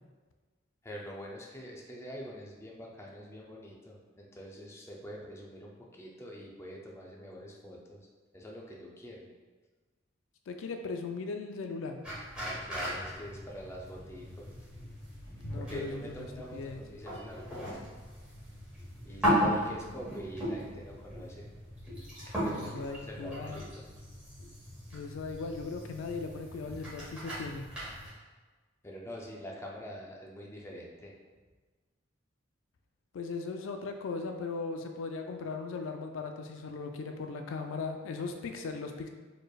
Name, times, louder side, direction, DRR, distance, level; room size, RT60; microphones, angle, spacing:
voice 1, 0.8-8.1 8.3-9.3 12.3-14.7 15.6-17.9 19.0-21.5 22.4-23.8 26.6-26.9 28.8-31.1, equal, 15° left, -2 dB, 0.5 m, -45 dB
voice 2, 10.5-12.0 15.4-16.8 22.5-23.6 24.9-27.8 33.1-39.1, left 4 dB, 80° left, 5 dB, 0.3 m, -38 dB
sound 1, 12.0-28.1, equal, 5° right, 1.3 m, -37 dB
4.3 x 3.2 x 2.4 m, 1.3 s
head